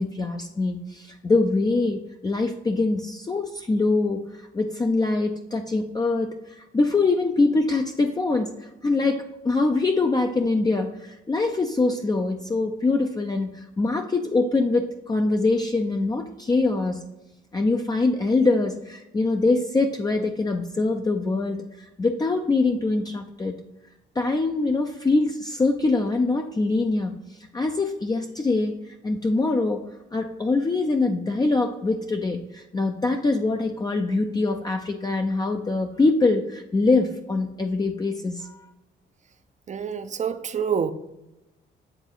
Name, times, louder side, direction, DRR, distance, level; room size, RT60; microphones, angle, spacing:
voice 1, 0.0-17.1 17.5-23.6 24.2-27.2 27.5-29.8 30.1-38.6, left 3 dB, 20° left, 3 dB, 0.5 m, -24 dB
voice 2, 39.7-40.9, right 7 dB, 35° right, 10 dB, 0.6 m, -27 dB
8.0 x 3.6 x 3.8 m, 0.95 s
cardioid pair, 90°, 20 cm